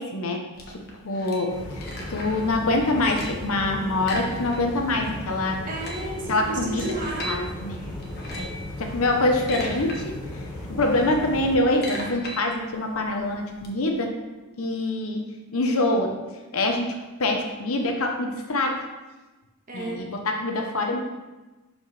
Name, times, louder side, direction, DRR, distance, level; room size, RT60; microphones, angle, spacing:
voice 1, 0.0-5.6 6.3-6.9 7.3-7.8 8.4-14.1 14.6-15.2 15.5-16.1 16.5-18.8 19.7-21.0, left 2 dB, 75° left, 3 dB, 0.8 m, -25 dB
sound 1, 0.6-2.5 2.8-3.5 4.0-4.9 5.2-5.3 5.6-7.4 8.0-8.6 9.2-10.0 10.3-13.7, left 1 dB, 45° left, 1.3 m, -37 dB
sound 2, 1.5-11.6, left 1 dB, 20° left, 1.9 m, -36 dB
voice 2, 5.6-7.4 19.7-20.0, right 1 dB, 40° right, -2 dB, 1.4 m, -32 dB
11.0 x 5.2 x 3.3 m, 1.2 s
head